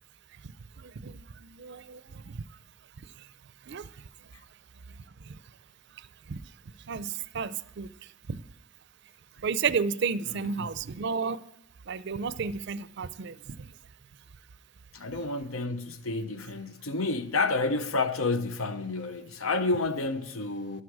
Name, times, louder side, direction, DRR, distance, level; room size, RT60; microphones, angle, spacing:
voice 1, 0.8-2.4 3.7-3.9 5.3-5.4 6.3-6.4 6.9-7.9 8.3-8.4 9.4-11.4 11.9-13.7, right 5 dB, 55° right, 0.5 m, -32 dB
voice 2, 14.9-20.8, left 3 dB, 85° left, 0.8 m, -30 dB
12.5 x 11.0 x 4.8 m
head